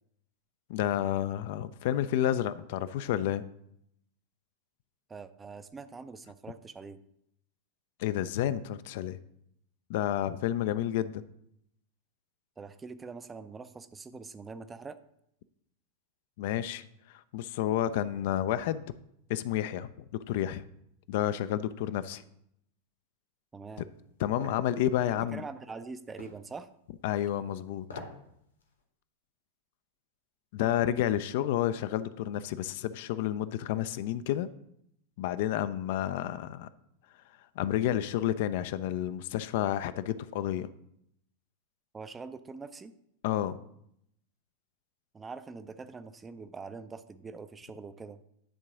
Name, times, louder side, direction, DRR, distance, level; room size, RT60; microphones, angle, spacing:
voice 1, 0.7-3.4 8.0-9.2 9.9-11.2 16.4-18.8 19.3-20.6 21.1-22.2 24.2-25.4 27.0-27.8 30.5-34.5 35.2-36.7 37.6-40.7 43.2-43.6, left 12 dB, 50° left, 13 dB, 0.4 m, -30 dB
voice 2, 5.1-7.0 12.6-15.0 23.5-23.9 25.1-26.7 41.9-42.9 45.1-48.2, right 4 dB, 15° right, 11 dB, 0.5 m, -44 dB
sound 1, 24.4-24.7 26.2-26.4 27.8-28.2 28.6-28.7, left 3 dB, 70° left, 1.4 m, -42 dB
10.0 x 3.8 x 5.9 m, 0.75 s
figure-of-eight pair, 90°, 0 cm